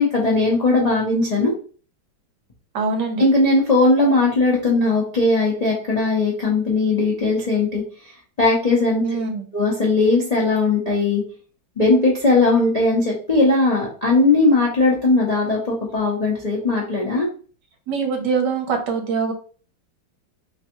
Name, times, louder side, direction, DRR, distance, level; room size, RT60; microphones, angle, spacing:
voice 1, 0.0-1.5 3.2-7.8 8.4-9.0 9.5-11.2 11.8-17.3, left 2 dB, 80° left, -5 dB, 0.3 m, -18 dB
voice 2, 2.7-3.2 9.0-9.5 17.9-19.3, right 5 dB, 70° right, 4 dB, 1.3 m, -23 dB
3.3 x 3.2 x 3.0 m, 0.41 s
omnidirectional pair, 2.0 m